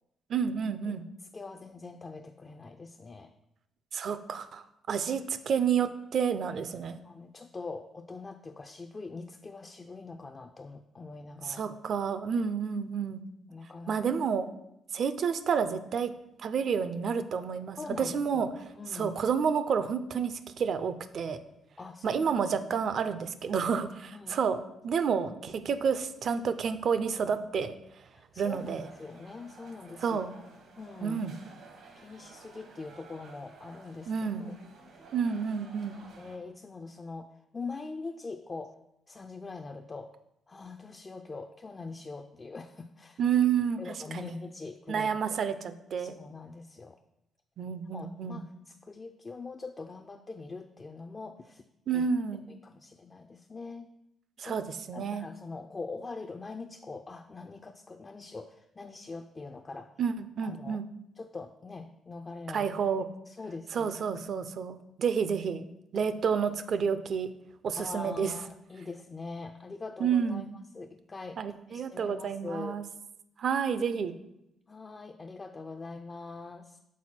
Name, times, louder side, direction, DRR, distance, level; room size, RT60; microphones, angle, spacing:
voice 1, 0.3-1.0 3.9-7.0 11.5-13.2 13.9-14.5 14.9-16.1 16.4-18.5 18.9-21.4 22.0-27.7 28.4-28.9 30.0-30.3 31.0-31.3 34.1-34.5 35.1-36.0 43.2-43.8 44.1-44.3 44.9-46.2 47.6-48.4 51.9-52.5 54.4-55.2 60.0-60.9 62.5-63.1 63.7-65.7 65.9-67.3 67.6-68.3 70.0-70.5 71.4-72.8 73.4-74.2, right 6 dB, 60° right, 12 dB, 0.4 m, -30 dB
voice 2, 1.3-3.3 7.0-11.8 13.5-13.9 17.8-19.2 21.8-22.2 24.1-24.4 28.1-30.2 30.8-31.2 32.0-34.1 34.4-34.6 36.2-38.8 39.1-40.1 40.5-43.2 43.8-45.4 46.0-47.0 47.9-51.6 51.9-52.0 52.5-53.9 54.4-54.6 54.9-59.9 60.4-60.8 61.2-62.7 63.3-63.9 67.8-70.4 70.7-71.4 71.7-72.8 74.7-76.8, left 3 dB, 30° left, 5 dB, 0.3 m, -43 dB
sound 1, 28.5-36.4, right 4 dB, 75° right, 1.1 m, -53 dB
6.2 x 4.2 x 4.2 m, 0.84 s
cardioid pair, 90°, 0 cm